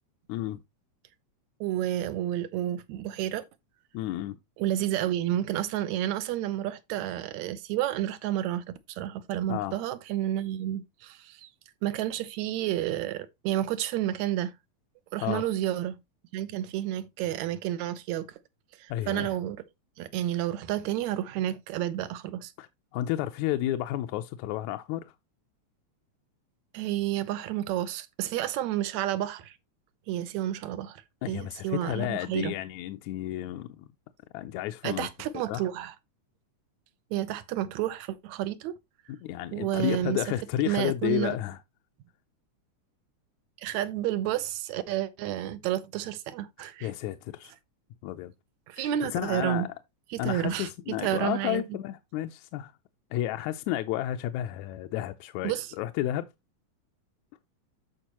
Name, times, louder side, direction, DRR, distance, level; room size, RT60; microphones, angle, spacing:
voice 1, 0.3-0.6 3.9-4.4 9.5-9.8 15.2-15.5 18.9-19.4 22.6-22.7 22.9-25.1 31.2-33.9 34.3-35.1 35.5-35.7 39.1-41.6 46.8-47.5 48.0-48.3 48.8-49.7 50.2-52.7 53.1-56.3, left 13 dB, 80° left, 1.9 m, -32 dB
voice 2, 1.6-3.4 4.6-11.5 11.8-14.6 15.1-16.0 16.3-18.3 18.8-19.6 20.0-22.5 26.7-29.6 30.1-32.5 34.8-35.9 37.1-38.7 39.5-40.2 40.7-41.4 43.6-46.9 48.7-49.7 50.1-50.7 51.0-51.6 55.4-55.7, right 12 dB, 75° right, 2.0 m, -30 dB
13.5 x 5.0 x 3.0 m
omnidirectional pair, 3.4 m